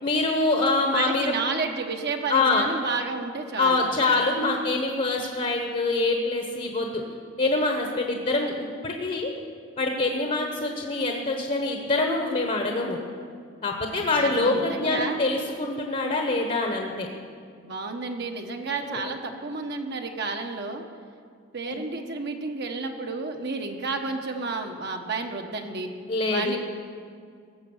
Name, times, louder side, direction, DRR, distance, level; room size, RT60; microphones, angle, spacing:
voice 1, 0.0-1.3 2.3-2.7 3.6-7.0 7.4-9.3 9.8-13.0 13.6-17.1 18.9-19.1 21.7-21.8 26.1-26.6, left 2 dB, 40° left, 2 dB, 1.1 m, -25 dB
voice 2, 0.9-3.9 13.9-15.2 17.6-20.8 21.5-25.9 26.3-26.6, right 3 dB, 55° right, 3 dB, 1.2 m, -31 dB
18.0 x 7.2 x 7.2 m, 2.2 s
head